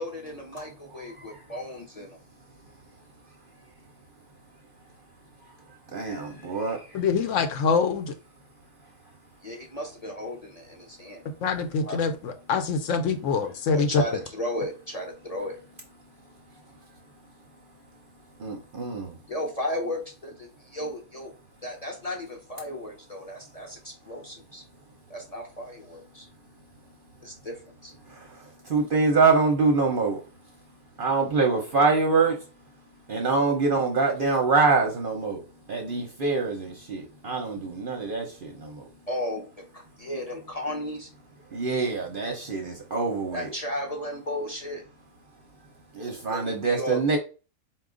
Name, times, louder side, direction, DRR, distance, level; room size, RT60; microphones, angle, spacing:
voice 1, 0.0-2.2 9.4-24.8 25.1-29.2 30.4-32.1 32.6-33.6 35.2-41.9 42.2-44.8 46.2-47.0, left 1 dB, 40° left, 0.6 m, -38 dB
voice 2, 5.9-7.0 18.4-19.2 28.1-30.2 31.0-32.4 33.1-35.4 35.7-38.8 41.5-43.5 45.9-47.2, right 4 dB, 50° right, 0.7 m, -25 dB
voice 3, 6.9-8.1 11.4-14.0, left 5 dB, 70° left, 0.9 m, -25 dB
4.3 x 2.3 x 3.7 m
omnidirectional pair, 1.5 m